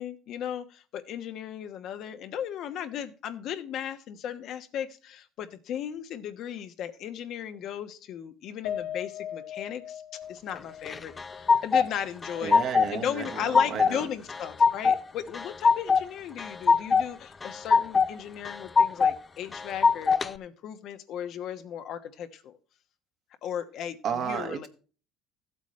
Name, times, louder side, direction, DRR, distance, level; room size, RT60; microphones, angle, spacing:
voice 1, 0.0-10.0 10.3-12.6 12.9-22.6 23.4-24.7, left 9 dB, 60° left, 1.1 m, -36 dB
Piano, 8.6-13.1 13.5-13.6 14.0-14.2, left 10 dB, 90° left, 0.9 m, -40 dB
sound 1, 10.9-11.9 12.2-12.9 13.2-13.9 14.3-15.0 15.3-16.0 16.4-17.1 17.4-18.1 18.4-19.1 19.5-20.3, left 5 dB, 25° left, 0.5 m, -22 dB
voice 2, 12.4-14.0 24.0-24.7, right 7 dB, 55° right, 1.7 m, -32 dB
14.5 x 8.3 x 3.2 m
supercardioid pair, 100°, 0 cm